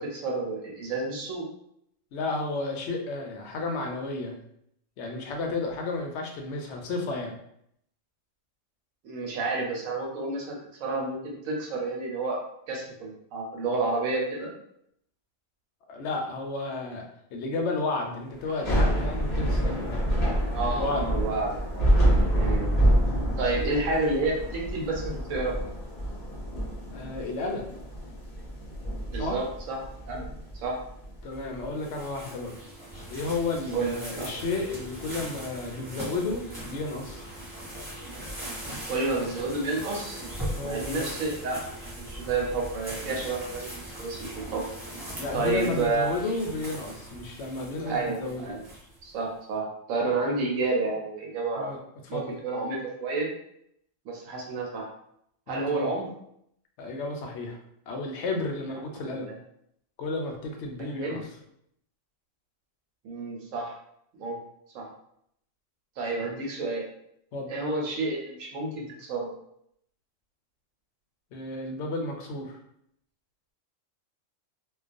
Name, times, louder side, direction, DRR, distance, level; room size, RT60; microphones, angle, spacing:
voice 1, 0.0-1.5 9.0-12.4 12.7-14.5 20.5-21.9 22.3-22.7 23.4-25.6 29.1-29.8 30.1-30.3 30.5-30.8 33.7-34.3 38.9-40.2 40.6-41.6 41.9-44.6 45.3-46.2 47.9-48.6 49.0-51.7 52.1-53.3 54.0-54.9 55.5-56.1 59.1-59.4 60.8-61.2 63.0-63.7 64.1-64.4 64.7-64.9 66.0-66.8 67.5-69.3, right 3 dB, 85° right, 0 dB, 1.0 m, -30 dB
voice 2, 2.1-4.4 5.0-7.4 15.9-17.0 17.3-20.1 20.8-21.1 23.5-23.6 26.9-27.6 29.2-29.4 31.2-32.5 33.1-37.3 40.5-41.1 45.2-48.5 51.6-51.8 52.1-52.3 55.5-55.9 56.8-57.6 57.9-59.3 60.0-61.2 67.3-67.5 71.3-72.6, left 3 dB, 70° left, 2 dB, 0.8 m, -32 dB
Thunder / Rain, 18.5-31.6, right 1 dB, 40° left, 0.7 m, -27 dB
sound 1, 31.3-49.1, right 1 dB, 20° right, 1.0 m, -40 dB
2.3 x 2.3 x 2.5 m, 0.72 s
omnidirectional pair, 1.4 m